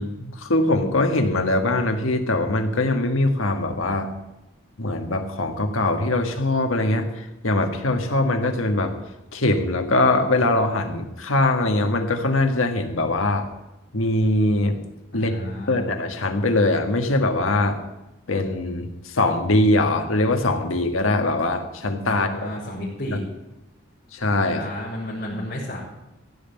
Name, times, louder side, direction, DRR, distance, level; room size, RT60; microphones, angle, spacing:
voice 1, 0.0-4.1 4.8-8.9 9.3-13.5 13.9-14.8 15.1-15.3 15.7-17.8 18.3-22.4 24.1-24.6, left 2 dB, 85° left, 6 dB, 1.6 m, -22 dB
voice 2, 15.1-15.9 22.1-23.2 24.5-25.8, left 1 dB, 55° left, -8 dB, 4.3 m, -32 dB
15.0 x 5.8 x 9.2 m, 0.97 s
head